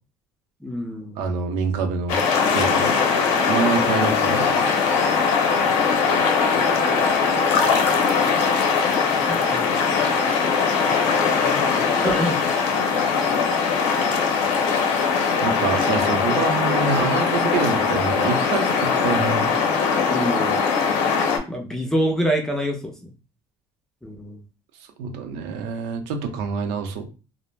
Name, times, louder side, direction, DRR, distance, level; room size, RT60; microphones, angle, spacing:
voice 1, 0.6-1.2 6.5-6.8 9.3-10.0 11.3-12.4 20.1-20.6 21.5-23.1 24.0-24.4, equal, 5° left, 2 dB, 0.3 m, -27 dB
voice 2, 1.2-3.0 3.5-4.7 15.4-19.5 25.0-27.1, right 5 dB, 80° right, 6 dB, 0.6 m, -26 dB
sound 1, 2.1-21.4, left 5 dB, 85° left, 0.7 m, -20 dB
2.4 x 2.0 x 3.1 m, 0.34 s
cardioid pair, 175°, 11 cm